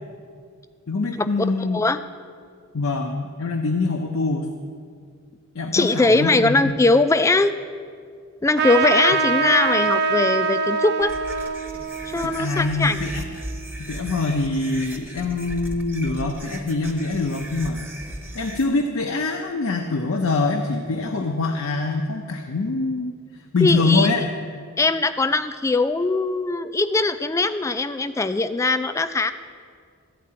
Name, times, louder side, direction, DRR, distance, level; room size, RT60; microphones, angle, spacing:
voice 1, 0.9-1.8 2.7-4.5 5.5-6.7 12.2-13.3 13.8-17.8 18.3-23.2 23.5-24.3, left 3 dB, 70° left, 4 dB, 0.6 m, -24 dB
voice 2, 1.6-2.0 5.7-7.5 8.4-11.1 12.1-13.0 23.6-24.1 24.8-29.3, left 3 dB, 15° left, 11 dB, 0.3 m, -21 dB
Trumpet, 8.6-13.6, right 4 dB, 50° right, 0.5 m, -24 dB
sound 1, 11.0-18.6, right 1 dB, 10° right, 0.8 m, -37 dB
13.5 x 4.6 x 8.6 m, 2.1 s
head